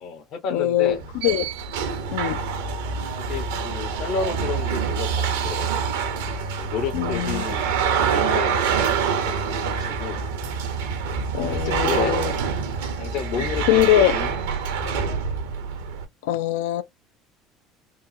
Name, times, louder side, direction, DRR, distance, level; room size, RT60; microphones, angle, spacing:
voice 1, 0.0-1.0 3.2-5.8 6.6-9.0 9.2-10.2 11.5-12.2 12.7-14.3 14.8-15.1, left 6 dB, 65° left, 1.0 m, -32 dB
voice 2, 0.5-1.0 1.2-1.5 2.1-2.4 6.9-7.4 11.3-12.3 13.7-14.2 16.2-16.8, left 13 dB, 80° left, 0.3 m, -21 dB
sound 1, 0.9-16.0, right 6 dB, 85° right, 0.7 m, -26 dB
3.6 x 2.0 x 2.7 m
hypercardioid pair, 80°, 0 cm